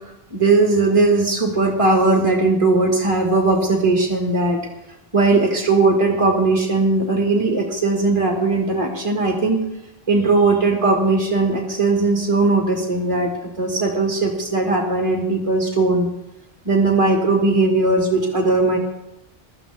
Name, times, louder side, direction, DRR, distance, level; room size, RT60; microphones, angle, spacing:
voice 1, 0.3-4.6 5.1-9.6 10.1-13.3 13.6-16.1 16.7-18.8, right 3 dB, 30° right, 0 dB, 2.1 m, -18 dB
22.5 x 13.5 x 3.6 m, 0.89 s
omnidirectional pair, 1.1 m